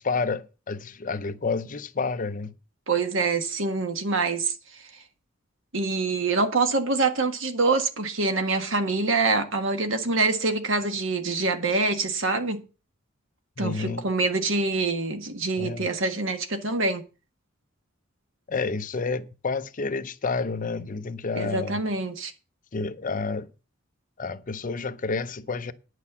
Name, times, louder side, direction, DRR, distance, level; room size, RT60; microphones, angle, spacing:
voice 1, 0.0-2.5 13.6-14.1 15.6-15.9 18.5-21.8 22.7-23.5 24.2-25.7, left 4 dB, 40° left, 0.6 m, -29 dB
voice 2, 2.9-4.8 5.7-12.6 13.6-17.0 21.3-22.3, right 3 dB, 70° right, 1.6 m, -25 dB
9.9 x 6.3 x 7.2 m
head